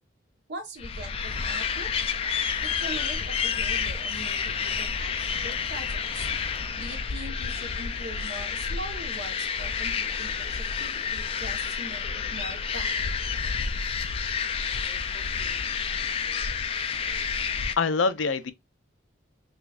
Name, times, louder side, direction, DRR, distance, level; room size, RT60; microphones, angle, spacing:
voice 1, 0.5-1.9 2.6-6.3 6.8-12.9, right 1 dB, 60° right, 1.0 m, -42 dB
sound 1, 0.8-17.7, left 6 dB, 30° left, 0.3 m, -29 dB
voice 2, 17.8-18.5, left 4 dB, 90° left, 0.5 m, -25 dB
4.9 x 2.4 x 2.4 m
head